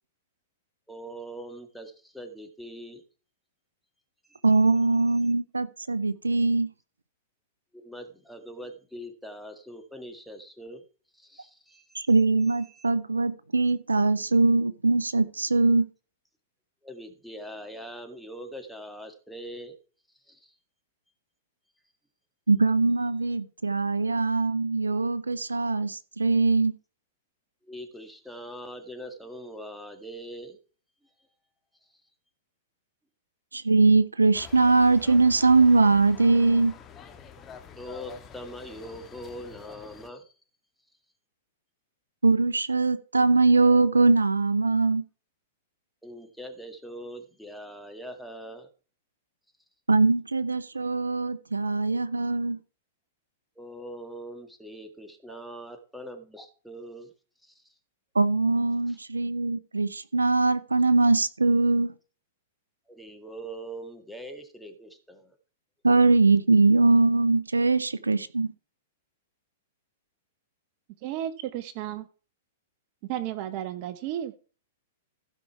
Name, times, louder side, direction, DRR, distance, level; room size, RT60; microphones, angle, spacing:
voice 1, 0.9-3.0 4.3-4.4 7.7-10.8 11.1-12.1 12.7-12.9 16.8-19.8 20.3-20.5 27.6-30.6 37.8-40.3 46.0-48.7 53.6-57.1 57.4-57.7 58.9-59.0 62.9-65.4, equal, ahead, 1.9 m, -42 dB
voice 2, 4.4-6.7 11.9-15.9 22.5-26.7 33.5-36.7 42.2-45.0 49.9-52.6 58.1-61.9 65.8-68.5, right 3 dB, 85° right, 0.6 m, -22 dB
sound 1, 34.3-40.1, left 7 dB, 25° left, 1.6 m, -47 dB
voice 3, 71.0-72.1 73.0-74.4, right 11 dB, 45° right, 0.8 m, -33 dB
15.5 x 5.5 x 4.7 m
figure-of-eight pair, 105°, 0 cm